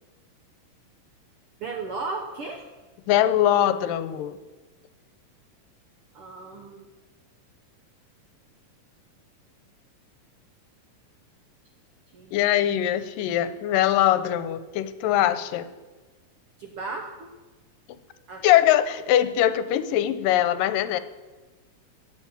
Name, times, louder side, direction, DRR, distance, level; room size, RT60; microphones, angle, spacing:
voice 1, 1.6-2.7 6.1-6.9 12.1-12.4 16.6-17.3 18.3-18.7, right 3 dB, 65° right, 3 dB, 1.4 m, -35 dB
voice 2, 3.1-4.4 12.3-15.7 18.4-21.0, left 12 dB, 85° left, 12 dB, 2.4 m, -22 dB
14.5 x 7.1 x 9.3 m, 1.2 s
omnidirectional pair, 3.9 m